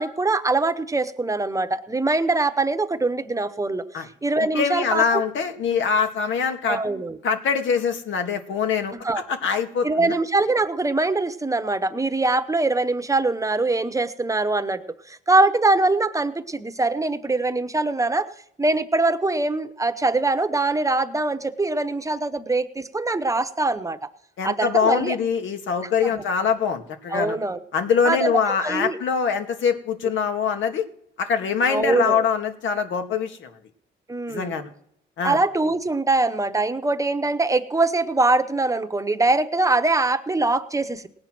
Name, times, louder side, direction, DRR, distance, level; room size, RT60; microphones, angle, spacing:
voice 1, 0.0-5.2 6.7-7.2 8.9-9.2 9.8-14.8 15.1-18.3 18.6-24.0 24.4-25.2 26.0-26.2 27.1-27.6 28.0-29.0 31.7-32.3 34.1-34.6 35.2-41.1, right 2 dB, 15° right, 10 dB, 1.0 m, -23 dB
voice 2, 4.5-6.8 7.2-8.9 9.3-10.2 24.4-27.4 27.7-30.9 31.2-33.5 34.3-34.7 35.2-35.4, left 6 dB, 75° left, 6 dB, 2.0 m, -23 dB
18.5 x 8.6 x 6.1 m, 0.71 s
cardioid pair, 90°, 20 cm